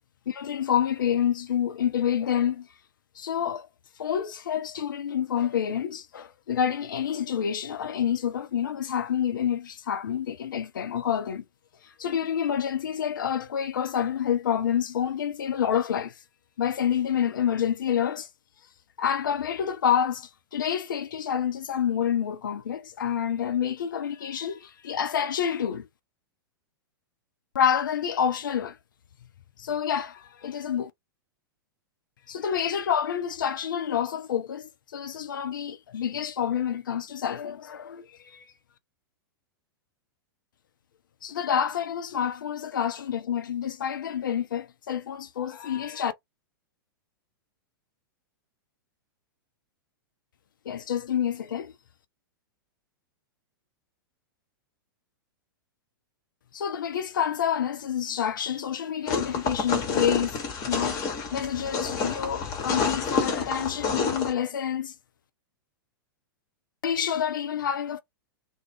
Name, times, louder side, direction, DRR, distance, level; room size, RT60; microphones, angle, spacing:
voice 1, 0.3-2.7 3.1-3.7 4.0-11.4 11.8-16.2 16.6-18.3 19.0-25.9 27.5-28.8 29.6-30.9 32.3-38.5 41.2-46.1 50.7-51.7 56.5-60.4 60.7-64.9 66.8-68.0, left 8 dB, 60° left, 0.4 m, -28 dB
sound 1, 59.1-64.3, left 5 dB, 30° left, 0.9 m, -29 dB
2.3 x 2.0 x 3.3 m
figure-of-eight pair, 100°, 12 cm